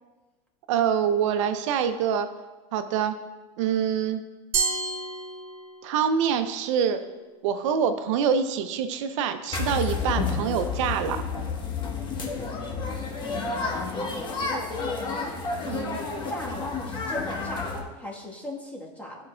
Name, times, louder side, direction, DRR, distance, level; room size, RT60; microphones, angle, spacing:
voice 1, 0.7-2.3 2.7-3.2 3.6-4.2 5.8-7.0 7.4-11.2 15.7-16.0, right 7 dB, 75° right, 9 dB, 0.5 m, -25 dB
Glass, 4.5-6.0, right 4 dB, 35° right, 1.4 m, -29 dB
sound 1, 9.5-17.8, left 4 dB, 30° left, 1.1 m, -30 dB
voice 2, 13.2-15.3 15.7-19.2, left 1 dB, 10° left, -2 dB, 1.2 m, -39 dB
11.0 x 4.6 x 2.2 m, 1.2 s
supercardioid pair, 115°, 16 cm